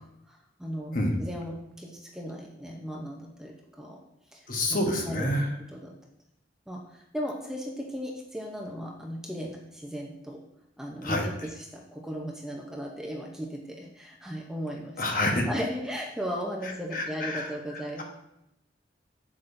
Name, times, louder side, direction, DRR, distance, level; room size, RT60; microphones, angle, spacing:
voice 1, 0.6-4.0 4.3-4.4 4.7-4.8 5.0-5.2 5.7-5.9 6.7-10.4 10.8-11.3 11.7-15.0 15.5-18.0, equal, 5° right, -1 dB, 0.7 m, -36 dB
voice 2, 4.5-5.5 11.0-11.3 15.0-15.5 16.6-18.0, left 1 dB, 45° left, 1 dB, 1.1 m, -28 dB
8.0 x 7.3 x 2.7 m, 0.82 s
head